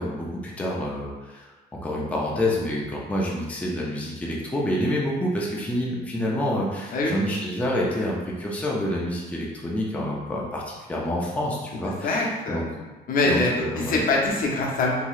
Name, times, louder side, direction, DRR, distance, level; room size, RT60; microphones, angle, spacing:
voice 1, 0.0-1.5 1.8-12.6 13.2-14.0, left 1 dB, 10° left, -4 dB, 0.5 m, -28 dB
voice 2, 12.0-15.0, left 2 dB, 55° left, -1 dB, 0.7 m, -24 dB
3.0 x 2.7 x 2.4 m, 1.2 s
cardioid pair, 105°, 18 cm